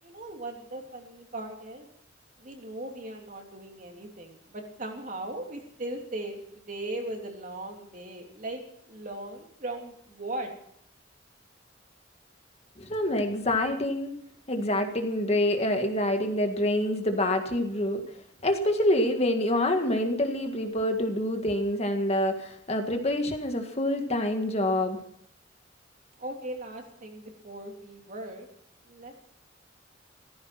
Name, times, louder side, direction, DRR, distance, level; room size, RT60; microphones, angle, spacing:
voice 1, 0.0-1.9 2.4-10.5 26.2-28.5 28.8-29.1, right 1 dB, 45° right, 2 dB, 3.1 m, -38 dB
voice 2, 12.8-14.1 14.5-18.0 18.4-25.0, left 1 dB, 35° left, 5 dB, 1.8 m, -26 dB
15.5 x 14.5 x 5.9 m, 0.69 s
head